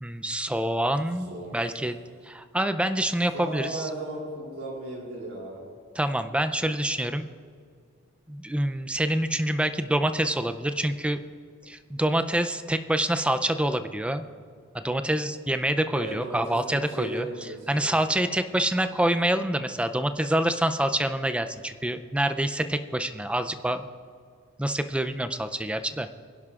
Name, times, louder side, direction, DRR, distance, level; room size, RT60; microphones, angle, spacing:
voice 1, 0.0-2.0 2.2-3.9 5.9-7.3 8.3-11.2 11.6-14.2 14.7-23.8 24.6-26.1, right 1 dB, 5° right, 9 dB, 0.4 m, -26 dB
voice 2, 1.1-1.8 3.3-5.6 15.9-17.9, right 1 dB, 75° right, -3 dB, 3.1 m, -36 dB
25.0 x 11.0 x 2.4 m, 2.2 s
head